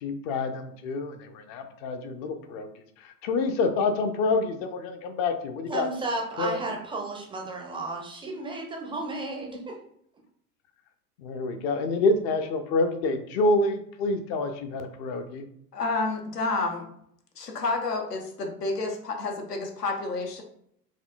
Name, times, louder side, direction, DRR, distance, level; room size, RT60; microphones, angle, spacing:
voice 1, 0.0-2.7 3.0-5.9 6.4-6.6 11.2-15.4, left 3 dB, 40° left, 7 dB, 0.5 m, -27 dB
voice 2, 5.7-9.8, right 2 dB, 10° right, 1 dB, 0.4 m, -33 dB
voice 3, 15.7-16.9 17.4-20.4, left 3 dB, 85° left, 2 dB, 0.8 m, -29 dB
4.2 x 2.7 x 2.4 m, 0.70 s
figure-of-eight pair, 80°, 47 cm